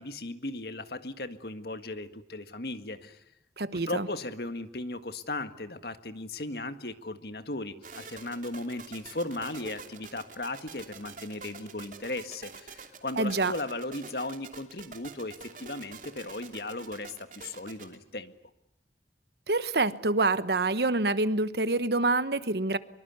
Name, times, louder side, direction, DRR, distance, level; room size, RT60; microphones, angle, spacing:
voice 1, 0.0-3.2 3.7-18.3, left 2 dB, 60° left, 1.8 m, -37 dB
voice 2, 3.6-4.1 13.2-13.5 19.5-22.8, right 2 dB, 70° right, 1.1 m, -26 dB
sound 1, 7.8-18.0, right 5 dB, 45° right, 2.9 m, -46 dB
24.5 x 23.5 x 9.6 m
head